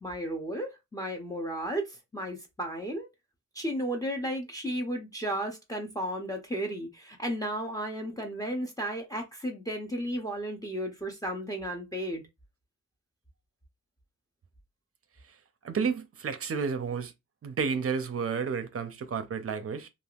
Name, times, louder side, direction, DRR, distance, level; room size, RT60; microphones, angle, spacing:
voice 1, 0.0-3.1 3.5-12.2, equal, 10° left, 0.6 m, -34 dB
voice 2, 15.6-17.1 17.4-19.9, right 5 dB, 45° right, 0.5 m, -31 dB
3.4 x 2.4 x 2.3 m
wide cardioid pair, 120°, 32 cm